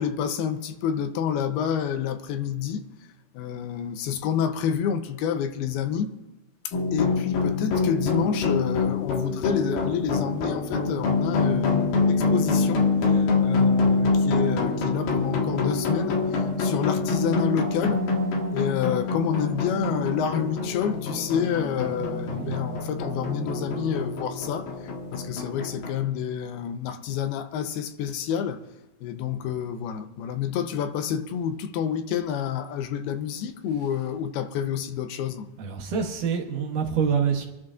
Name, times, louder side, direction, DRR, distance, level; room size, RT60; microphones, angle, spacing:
voice 1, 0.0-2.8 3.3-6.1 6.7-18.1 18.5-28.6 29.0-35.5, left 8 dB, 85° left, 2.8 m, -29 dB
sound 1, 6.7-26.0, left 3 dB, 65° left, 3.3 m, -25 dB
voice 2, 21.9-22.6 35.6-37.5, right 6 dB, 65° right, 2.5 m, -27 dB
26.5 x 12.0 x 2.5 m
omnidirectional pair, 4.4 m